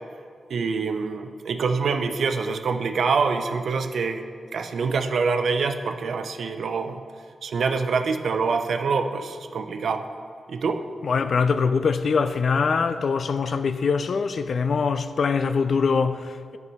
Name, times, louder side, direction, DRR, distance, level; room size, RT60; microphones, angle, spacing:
voice 1, 0.5-4.2 4.5-7.0 7.4-10.0 10.5-10.8, right 4 dB, 75° right, 0.5 m, -25 dB
voice 2, 11.0-16.6, left 5 dB, 60° left, 0.4 m, -23 dB
11.5 x 4.7 x 5.4 m
wide cardioid pair, 115°, 0 cm